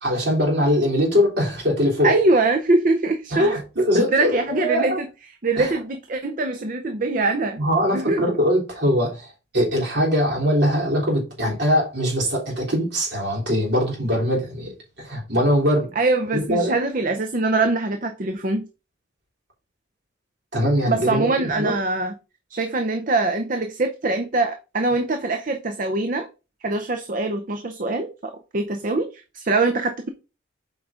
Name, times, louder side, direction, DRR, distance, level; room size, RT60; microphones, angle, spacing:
voice 1, 0.0-2.1 3.3-3.6 3.9-5.0 5.6-5.7 7.6-9.3 9.5-14.7 15.0-15.9 16.3-16.7 20.5-21.7, equal, 60° right, 3.5 m, -22 dB
voice 2, 2.0-3.6 3.9-5.1 5.4-7.6 7.9-8.2 16.0-18.7 20.9-22.2 22.5-26.3 26.6-30.1, right 2 dB, 45° right, 0.6 m, -23 dB
8.0 x 4.7 x 3.7 m
head